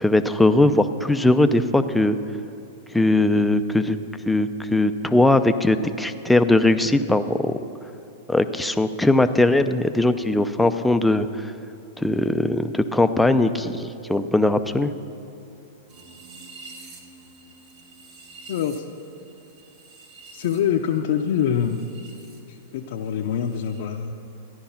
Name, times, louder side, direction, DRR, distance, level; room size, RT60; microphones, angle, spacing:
voice 1, 0.0-2.2 2.9-4.0 4.3-7.6 8.3-11.5 12.0-14.9, left 2 dB, 5° left, 9 dB, 0.5 m, -20 dB
sound 1, 15.9-22.4 22.7-23.8, right 3 dB, 50° right, 2.0 m, -47 dB
voice 2, 18.5-18.8 20.3-21.8 22.5-24.1, left 8 dB, 65° left, 1 dB, 0.7 m, -25 dB
14.0 x 10.5 x 5.7 m, 2.8 s
hypercardioid pair, 135°, 0 cm